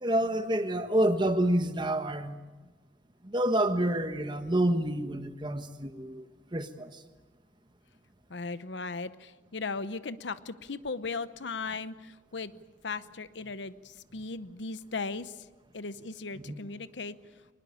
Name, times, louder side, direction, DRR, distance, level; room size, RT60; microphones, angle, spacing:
voice 1, 0.0-2.4 3.2-6.3 6.5-6.9 16.5-16.6, right 1 dB, 25° right, 1.3 m, -28 dB
voice 2, 8.3-12.5 12.8-15.5 15.7-17.2, left 4 dB, 65° left, 0.8 m, -37 dB
23.5 x 20.0 x 8.6 m
head